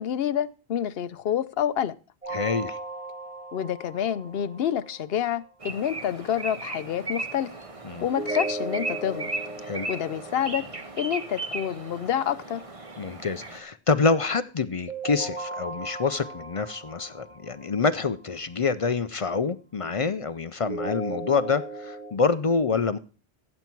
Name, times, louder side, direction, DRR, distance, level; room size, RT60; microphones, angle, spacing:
voice 1, 0.0-1.9 3.5-7.5 8.0-9.3 9.9-10.6 11.0-12.6, left 9 dB, 65° left, 0.8 m, -28 dB
sound 1, 2.2-5.2 8.1-11.2 14.9-18.1 20.6-22.1, right 2 dB, 5° right, 4.0 m, -37 dB
voice 2, 2.3-2.8 7.8-8.1 9.6-9.9 13.0-23.0, left 4 dB, 45° left, 0.5 m, -26 dB
sound 2, 5.6-13.6, right 3 dB, 30° right, 1.3 m, -36 dB
15.0 x 7.2 x 4.5 m
omnidirectional pair, 1.1 m